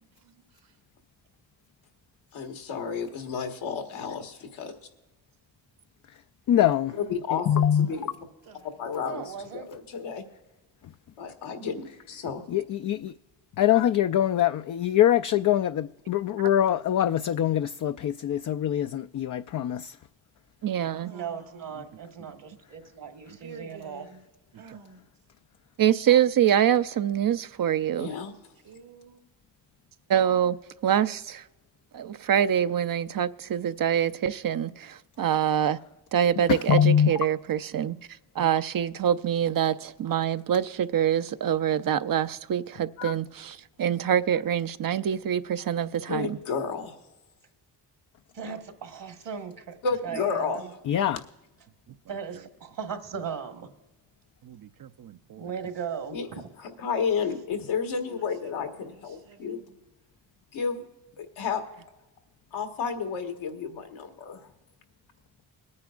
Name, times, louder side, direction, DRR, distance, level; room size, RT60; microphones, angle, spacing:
voice 1, 0.2-0.8 6.9-7.0 7.5-8.1 8.4-8.7 21.0-21.8 23.4-24.2 24.5-25.1 28.6-29.2 58.1-59.8, right 4 dB, 80° right, 2.5 m, -50 dB
voice 2, 2.3-4.7 7.1-8.1 8.8-10.2 11.2-12.4 28.0-28.3 46.1-47.0 49.8-50.6 56.1-56.3 56.6-59.6 60.5-60.8 61.2-61.6 62.5-64.5, left 6 dB, 80° left, 1.6 m, -31 dB
voice 3, 6.5-6.9 7.5-7.9 12.5-13.1 13.6-19.9 36.5-37.1 43.0-43.1 50.9-51.2, left 10 dB, 45° left, 0.4 m, -23 dB
voice 4, 9.0-9.7 21.1-24.1 48.3-49.8 50.0-50.7 52.1-53.7 55.4-56.5, right 7 dB, 65° right, 1.7 m, -37 dB
voice 5, 20.6-21.1 25.8-28.1 30.1-30.6 30.8-31.4 31.9-35.8 36.1-38.0 38.4-46.4 54.4-55.4, right 9 dB, 45° right, 0.6 m, -25 dB
22.0 x 9.6 x 2.5 m
supercardioid pair, 45°, 47 cm